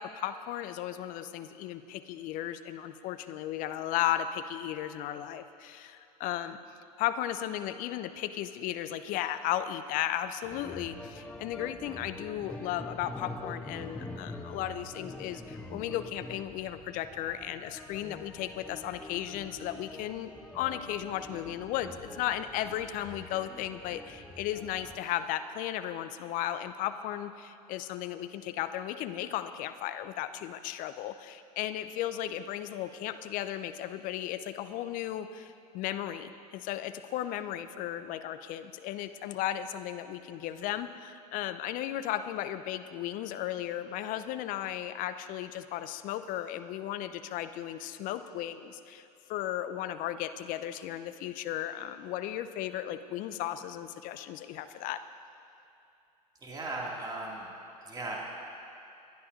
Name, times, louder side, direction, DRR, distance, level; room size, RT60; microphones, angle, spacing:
voice 1, 0.0-6.6 7.0-55.0, left 12 dB, 40° left, 12 dB, 0.6 m, -35 dB
sound 1, 10.4-25.0, left 1 dB, 5° left, 0.7 m, -45 dB
voice 2, 56.4-57.5 57.8-58.2, right 2 dB, 20° right, -3 dB, 2.2 m, -37 dB
20.5 x 11.0 x 2.6 m, 2.6 s
hypercardioid pair, 85°, 21 cm